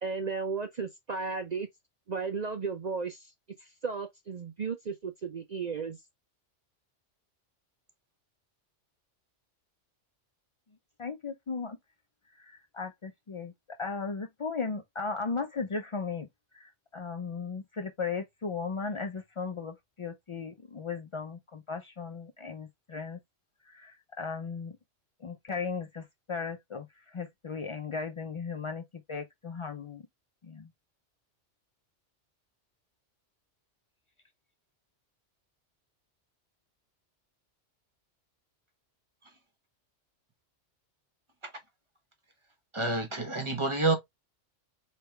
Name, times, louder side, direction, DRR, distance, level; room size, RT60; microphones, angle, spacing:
voice 1, 0.0-1.7 2.1-3.3 3.6-6.0, right 5 dB, 45° right, 0.6 m, -34 dB
voice 2, 11.0-11.8 12.3-13.5 13.8-16.3 16.5-23.2 23.7-24.8 25.2-30.0 30.4-30.7, left 4 dB, 45° left, 0.4 m, -36 dB
voice 3, 42.7-44.0, right 2 dB, 25° right, 1.2 m, -28 dB
4.7 x 3.3 x 3.2 m
omnidirectional pair, 1.2 m